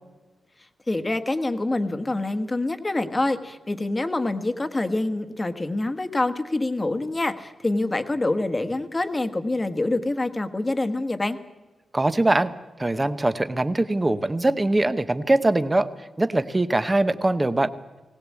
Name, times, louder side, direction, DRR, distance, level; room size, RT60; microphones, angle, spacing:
voice 1, 0.9-11.4, left 2 dB, 15° left, 8 dB, 1.3 m, -26 dB
voice 2, 11.9-12.5 12.8-15.9 16.2-17.7, right 2 dB, 15° right, 12 dB, 0.9 m, -22 dB
20.5 x 18.0 x 8.4 m, 1.2 s
wide cardioid pair, 155°, 0 cm